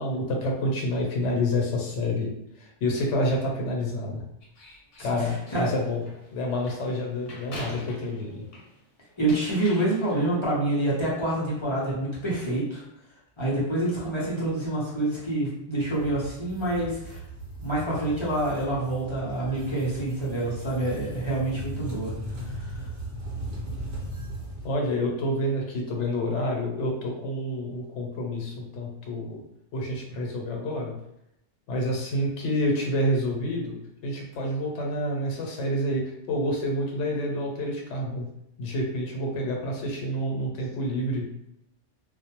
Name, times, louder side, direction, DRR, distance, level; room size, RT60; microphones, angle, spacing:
voice 1, 0.0-2.3 2.6-4.2 5.0-6.0 6.3-8.4 24.6-29.4 29.7-30.9 31.7-33.8 34.0-38.3 38.6-41.2, left 1 dB, 85° left, 0 dB, 1.0 m, -28 dB
sound 1, 4.4-8.8 9.1-10.4, equal, 60° left, 0.9 m, -43 dB
voice 2, 5.0-5.7 9.2-12.8 13.4-17.2 17.6-22.1 22.5-22.8, right 1 dB, 30° left, -7 dB, 0.6 m, -27 dB
sound 2, 15.8-24.7, right 1 dB, 50° right, 0.8 m, -38 dB
2.2 x 2.1 x 2.9 m, 0.80 s
omnidirectional pair, 1.2 m